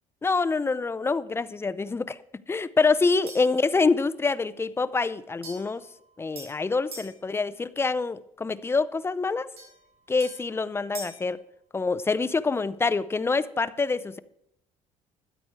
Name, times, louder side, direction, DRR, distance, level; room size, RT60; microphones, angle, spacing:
voice 1, 0.2-2.2 2.5-5.8 6.2-9.5 10.1-11.4 11.7-14.2, left 4 dB, 15° left, 0.5 m, -26 dB
sound 1, 3.3-3.6 5.4-7.2 9.6-11.3, right 2 dB, 45° right, 5.6 m, -44 dB
13.0 x 9.6 x 4.7 m
cardioid pair, 105°, 14 cm